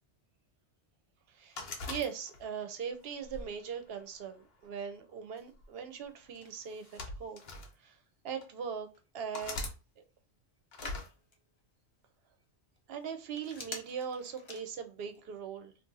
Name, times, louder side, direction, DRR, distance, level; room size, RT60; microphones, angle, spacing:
voice 1, 1.3-7.4 7.8-8.0 8.2-8.9 9.1-9.7 10.0-10.1 12.9-15.7, right 7 dB, 65° right, 0.8 m, -40 dB
sound 1, 1.6-2.6 3.2-4.4 5.4-5.6 6.7-7.7 8.4-8.5 9.3-9.8 10.7-11.1, left 2 dB, 60° left, 1.0 m, -41 dB
Telephone, 5.6-15.2, left 2 dB, 35° left, 0.5 m, -53 dB
2.6 x 2.4 x 3.8 m
omnidirectional pair, 1.2 m